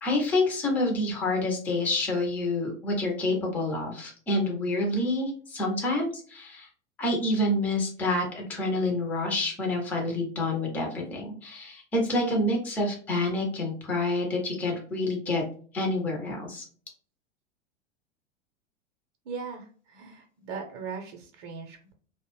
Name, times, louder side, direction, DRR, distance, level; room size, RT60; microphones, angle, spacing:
voice 1, 0.0-6.7 7.0-15.4 15.7-16.6, left 2 dB, 5° left, 0 dB, 0.3 m, -28 dB
voice 2, 19.2-21.9, right 5 dB, 45° right, 2 dB, 0.6 m, -39 dB
2.5 x 2.0 x 2.9 m, 0.43 s
figure-of-eight pair, 90°, 36 cm